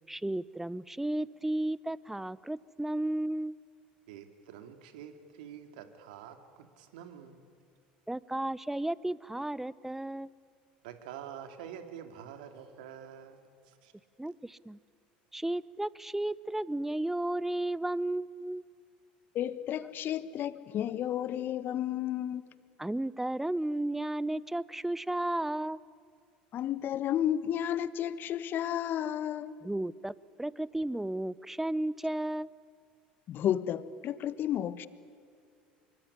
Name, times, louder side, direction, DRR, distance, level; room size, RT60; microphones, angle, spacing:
voice 1, 0.1-3.5 8.1-10.3 14.2-14.8 15.3-18.6 22.8-25.8 29.6-32.5, right 1 dB, 5° right, 0.7 m, -33 dB
voice 2, 4.1-6.4 6.8-7.4 10.8-13.5 13.8-13.9, right 9 dB, 75° right, 2.6 m, -46 dB
voice 3, 19.3-22.4 26.5-29.5 33.3-34.9, left 10 dB, 50° left, 1.3 m, -32 dB
24.5 x 23.0 x 9.8 m
hypercardioid pair, 75°, 5 cm